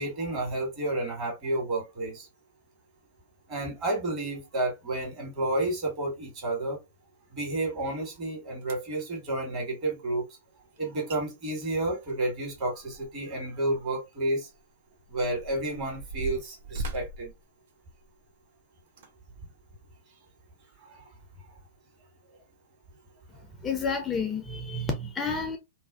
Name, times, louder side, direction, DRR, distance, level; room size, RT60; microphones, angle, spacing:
voice 1, 0.0-2.3 3.5-6.8 7.3-10.3 10.8-14.5 15.1-17.3 20.8-21.1, right 2 dB, 35° right, 1.4 m, -31 dB
sound 1, 8.2-8.3 8.6-9.0 10.8-10.9 11.1-11.2 11.5-13.3 13.7-13.8 14.5-18.3 18.9-19.1 19.7-19.8, right 2 dB, 65° right, 0.6 m, -40 dB
voice 2, 23.6-25.6, left 4 dB, 20° left, 0.5 m, -30 dB
2.5 x 2.1 x 2.3 m
hypercardioid pair, 105°, 0 cm